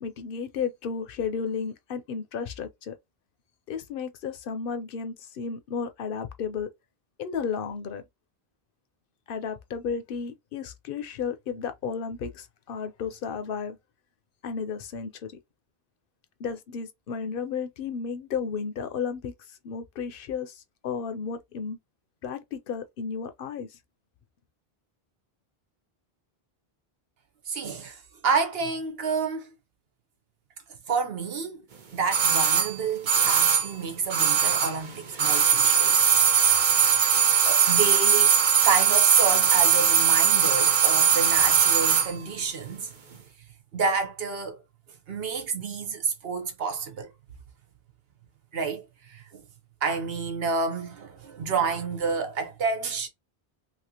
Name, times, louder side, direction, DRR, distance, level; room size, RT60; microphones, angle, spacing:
voice 1, 0.0-2.9 3.7-6.7 7.2-8.0 9.3-13.8 14.4-15.3 16.4-21.8 22.2-23.8, left 6 dB, 65° left, 0.8 m, -33 dB
voice 2, 27.5-29.5 30.9-31.7 31.9-36.1 37.0-38.3 38.6-42.9 43.7-44.6 45.1-47.1 48.5-49.4 49.8-53.1, right 5 dB, 75° right, 1.1 m, -29 dB
sound 1, 32.1-34.9 35.1-42.1 42.4-42.5, right 7 dB, 50° right, 0.9 m, -20 dB
3.0 x 2.7 x 2.8 m
omnidirectional pair, 1.0 m